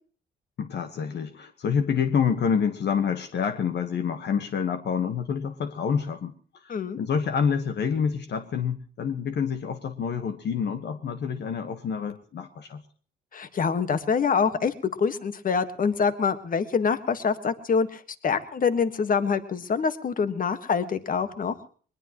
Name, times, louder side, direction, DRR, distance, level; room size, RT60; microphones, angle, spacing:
voice 1, 0.6-12.8, left 7 dB, 60° left, 7 dB, 1.4 m, -27 dB
voice 2, 13.3-21.5, left 6 dB, 45° left, 11 dB, 1.6 m, -25 dB
21.5 x 20.5 x 3.1 m, 0.44 s
cardioid pair, 90°, 20 cm